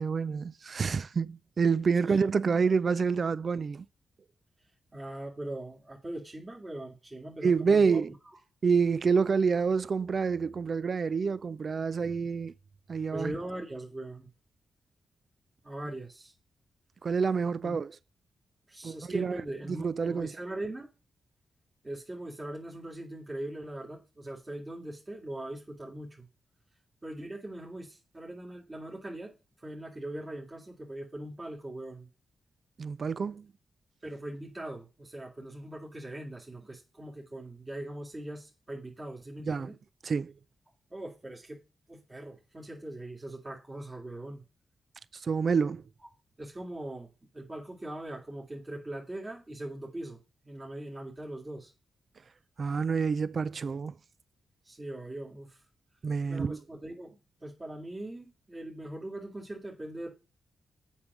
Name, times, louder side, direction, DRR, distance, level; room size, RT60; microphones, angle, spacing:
voice 1, 0.0-3.9 7.4-8.1 8.6-12.5 12.9-13.3 17.0-17.9 18.8-19.4 19.7-20.3 32.8-33.5 39.5-39.7 40.0-40.3 45.1-45.8 52.6-53.9 56.0-56.6, right 5 dB, 55° right, 0.4 m, -27 dB
voice 2, 4.9-8.1 9.2-9.3 13.1-14.3 15.6-16.3 17.6-17.8 18.7-20.9 21.8-26.3 27.0-29.3 29.6-32.1 34.0-39.8 40.9-41.6 41.9-44.4 46.0-46.1 46.4-47.1 47.3-50.2 50.4-51.7 54.6-55.6 56.3-60.1, right 1 dB, 30° right, 2.4 m, -41 dB
7.3 x 5.4 x 6.1 m
supercardioid pair, 45°, 0 cm